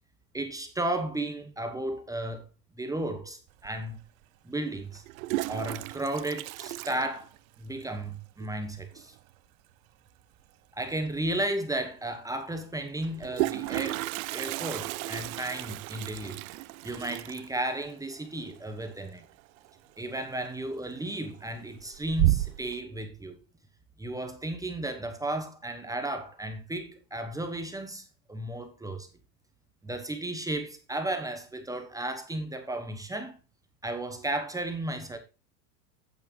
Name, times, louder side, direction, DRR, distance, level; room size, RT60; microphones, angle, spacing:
voice 1, 0.3-2.5 2.8-4.0 4.4-5.0 5.5-7.3 7.6-9.1 10.7-14.0 14.3-16.5 16.8-19.2 20.0-23.4 24.0-29.1 29.8-33.4 33.8-35.2, right 1 dB, 5° right, 1.1 m, -34 dB
Toilet flush, 3.6-3.7 4.9-7.8 8.0-8.1 8.4-8.5 8.8-9.2 10.9-11.0 11.3-11.4 13.0-19.7 20.0-20.4 20.8-21.4 21.8-22.8, right 19 dB, 55° right, 0.5 m, -33 dB
8.8 x 8.6 x 3.2 m
hypercardioid pair, 115°, 49 cm